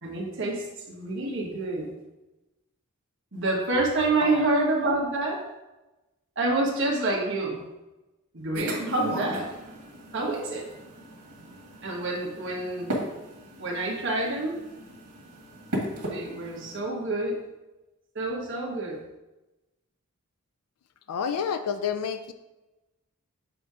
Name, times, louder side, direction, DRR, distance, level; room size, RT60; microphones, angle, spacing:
voice 1, 0.0-1.9 3.3-5.4 6.4-7.6 8.3-9.4 10.1-10.6 11.8-13.0 13.6-14.6 16.0-17.4 18.1-19.0, right 2 dB, 55° right, -2 dB, 1.3 m, -27 dB
sound 1, 8.5-16.8, right 1 dB, 85° right, 1.5 m, -37 dB
voice 2, 21.1-22.3, left 7 dB, 85° left, 9 dB, 0.4 m, -29 dB
7.5 x 2.8 x 4.8 m, 1.0 s
head